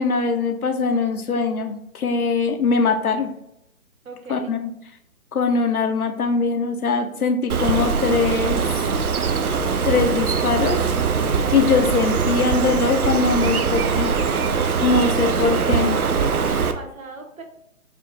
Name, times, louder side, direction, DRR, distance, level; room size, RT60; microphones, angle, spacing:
voice 1, 0.0-3.3 4.3-4.6 5.3-8.6 9.9-10.8 11.5-14.1 14.8-16.0, left 4 dB, 80° left, 6 dB, 0.8 m, -21 dB
voice 2, 4.0-4.5 15.2-15.5 16.2-17.4, right 3 dB, 70° right, 3 dB, 1.1 m, -37 dB
Bird, 7.5-16.7, right 5 dB, 85° right, 0.6 m, -22 dB
4.8 x 2.6 x 3.2 m, 0.80 s
figure-of-eight pair, 145°, 43 cm